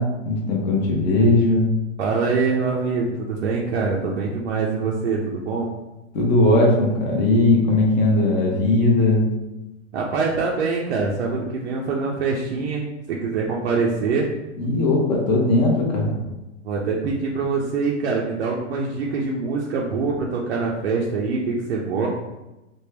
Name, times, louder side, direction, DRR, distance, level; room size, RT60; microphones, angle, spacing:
voice 1, 0.0-1.7 6.1-9.3 14.6-16.2, left 2 dB, 35° left, -2 dB, 0.7 m, -18 dB
voice 2, 2.0-5.7 9.9-14.3 16.6-22.1, right 4 dB, 60° right, -2 dB, 0.6 m, -24 dB
3.4 x 2.2 x 3.3 m, 1.0 s
hypercardioid pair, 150°, 38 cm